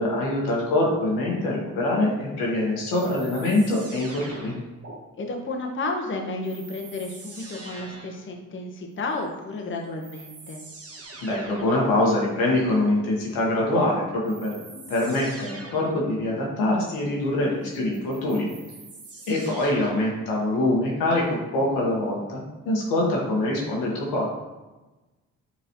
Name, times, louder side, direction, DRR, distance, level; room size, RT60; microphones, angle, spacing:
voice 1, 0.0-4.5 11.2-14.6 14.9-18.5 19.3-24.3, left 1 dB, 80° left, -2 dB, 1.2 m, -24 dB
sound 1, 2.9-5.0 6.4-8.3 9.5-9.6 10.0-11.9 14.2-16.0 17.7-20.2, right 3 dB, 40° right, 1.0 m, -44 dB
voice 2, 5.2-10.6, left 2 dB, 35° left, 2 dB, 0.9 m, -32 dB
5.6 x 3.1 x 2.8 m, 1.1 s
supercardioid pair, 50°, 35 cm